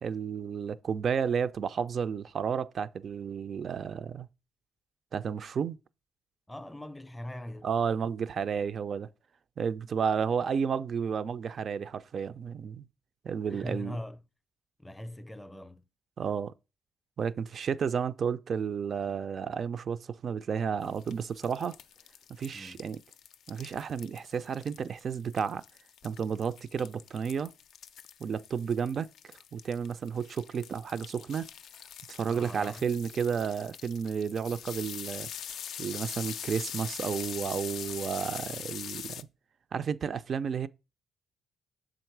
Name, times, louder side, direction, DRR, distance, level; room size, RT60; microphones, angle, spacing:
voice 1, 0.0-4.3 5.1-5.8 7.6-9.1 9.6-12.9 13.2-14.0 16.2-16.5 17.2-21.7 22.4-23.0 23.5-25.6 26.0-27.5 28.2-29.1 29.5-31.5 32.1-35.3 35.8-39.3 39.7-40.7, right 6 dB, 50° right, 0.4 m, -32 dB
voice 2, 6.5-7.7 13.5-14.2 14.8-15.8 22.5-22.9 32.3-32.8, left 1 dB, 10° left, 0.5 m, -41 dB
sound 1, 20.8-39.2, left 9 dB, 70° left, 0.3 m, -43 dB
6.4 x 3.8 x 4.5 m
cardioid pair, 90°, 0 cm